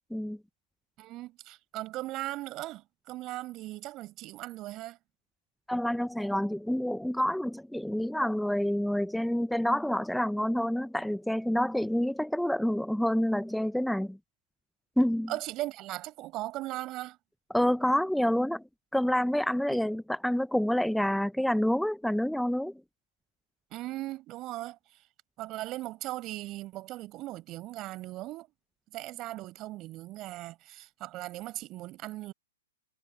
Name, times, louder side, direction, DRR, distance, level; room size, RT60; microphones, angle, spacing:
voice 1, 1.0-5.0 15.3-17.2 23.7-24.8 25.4-28.5 28.9-32.3, right 17 dB, 30° right, 6.0 m, -38 dB
voice 2, 5.7-14.2 15.0-15.3 17.5-18.6 18.9-22.7, equal, ahead, 0.7 m, -28 dB
hypercardioid pair, 120°, 0 cm